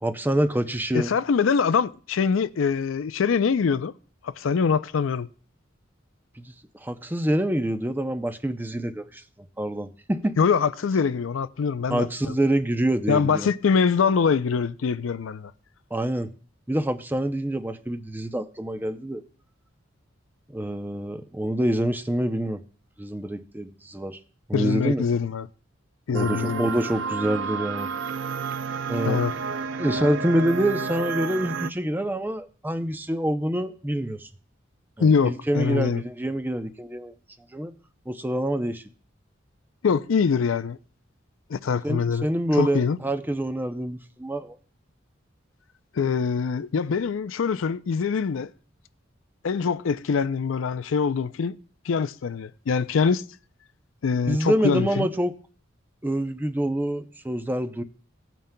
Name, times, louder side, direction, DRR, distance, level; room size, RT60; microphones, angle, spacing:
voice 1, 0.0-1.1 6.4-9.2 9.6-10.4 11.9-13.5 15.9-16.3 16.7-19.2 20.5-22.6 23.0-24.2 24.5-25.0 26.1-27.9 28.9-29.2 29.8-34.3 35.0-37.1 37.5-37.7 38.1-38.8 41.8-44.5 54.3-55.3 56.0-57.8, right 1 dB, 10° right, 0.5 m, -26 dB
voice 2, 0.9-3.9 4.2-5.3 10.4-12.3 13.1-15.5 24.5-25.5 26.1-26.7 29.0-29.3 35.0-36.0 39.8-40.8 41.5-42.3 42.6-43.0 45.9-48.5 49.4-51.5 51.9-53.2 54.0-55.1, left 6 dB, 90° left, 0.4 m, -24 dB
sound 1, 26.1-31.7, right 5 dB, 70° right, 0.4 m, -30 dB
18.0 x 9.1 x 2.2 m
head